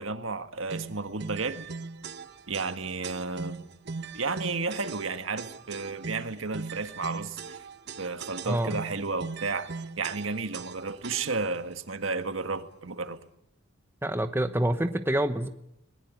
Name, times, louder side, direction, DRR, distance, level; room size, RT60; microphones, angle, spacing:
voice 1, 0.0-1.7 2.5-3.7 4.1-7.6 8.0-13.2, right 4 dB, 70° right, 1.7 m, -32 dB
sound 1, 0.7-11.6, right 4 dB, 55° right, 1.1 m, -40 dB
voice 2, 8.4-8.8 14.0-15.5, right 1 dB, 10° right, 1.0 m, -27 dB
21.0 x 21.0 x 9.4 m
head